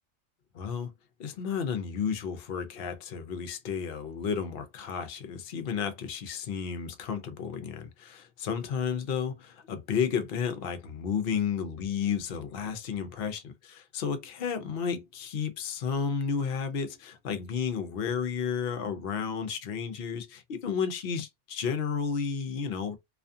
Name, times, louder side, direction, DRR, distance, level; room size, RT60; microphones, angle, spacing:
voice 1, 0.5-0.9 1.2-23.0, left 6 dB, 55° left, 0.7 m, -32 dB
2.4 x 2.3 x 2.6 m
omnidirectional pair, 1.3 m